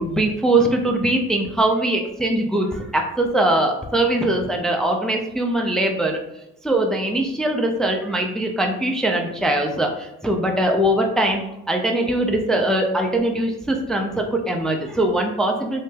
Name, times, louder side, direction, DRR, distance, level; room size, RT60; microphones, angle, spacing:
voice 1, 0.0-6.2 6.6-11.4 11.7-15.8, right 1 dB, ahead, 2 dB, 0.4 m, -21 dB
3.2 x 2.1 x 3.2 m, 0.87 s
supercardioid pair, 60°, 35 cm